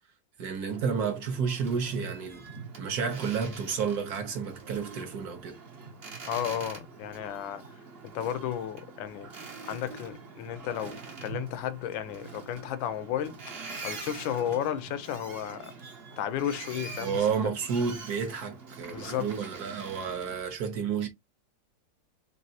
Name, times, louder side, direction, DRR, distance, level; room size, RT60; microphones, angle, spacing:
voice 1, 0.4-2.4 2.8-5.6 17.0-21.1, right 6 dB, 60° right, 1.2 m, -31 dB
Boat Water vehicle, 0.6-20.4, right 4 dB, 40° right, 1.0 m, -44 dB
voice 2, 6.3-7.6 8.0-9.3 9.6-13.4 13.8-15.7 16.2-17.2 18.9-19.3, left 10 dB, 90° left, 1.3 m, -33 dB
4.0 x 3.3 x 2.7 m
omnidirectional pair, 2.0 m